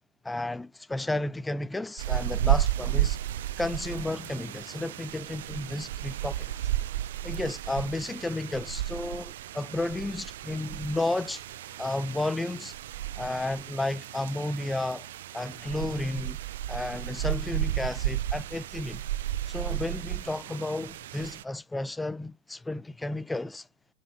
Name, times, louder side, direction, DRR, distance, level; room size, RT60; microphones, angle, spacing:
voice 1, 0.2-3.2 3.6-6.8 7.2-11.4 11.8-12.7 13.2-15.1 15.3-16.4 16.7-19.0 19.5-23.7, left 2 dB, 10° left, 0.3 m, -32 dB
sound 1, 2.0-21.4, right 13 dB, 70° right, 0.4 m, -33 dB
6.1 x 4.6 x 5.4 m
hypercardioid pair, 95°, 0 cm